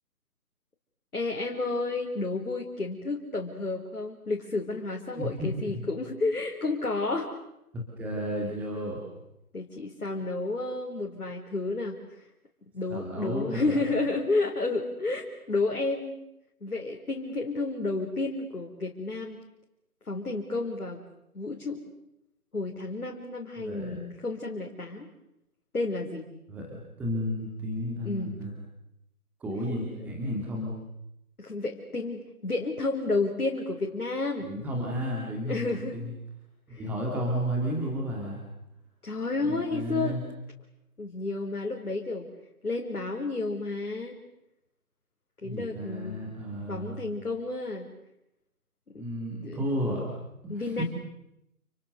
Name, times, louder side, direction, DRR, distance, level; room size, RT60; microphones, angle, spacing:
voice 1, 1.1-7.3 9.5-12.0 12.7-16.2 16.6-19.4 20.1-21.0 21.3-21.8 22.5-25.1 25.7-26.3 28.0-28.4 30.0-30.1 31.4-34.5 35.5-36.0 36.7-36.8 39.0-40.3 41.0-42.3 42.6-44.2 45.4-46.2 46.7-47.9 48.9-49.0 49.3-49.7 50.5-50.8, left 3 dB, 70° left, 1 dB, 4.2 m, -31 dB
voice 2, 5.1-5.8 7.7-9.0 12.9-13.8 23.6-24.0 26.5-28.5 29.4-30.8 34.4-36.1 36.8-38.4 39.4-40.2 45.4-47.0 49.0-50.1 50.4-50.8, equal, 5° right, -2 dB, 2.1 m, -32 dB
29.0 x 29.0 x 6.7 m, 0.85 s
figure-of-eight pair, 155°, 45 cm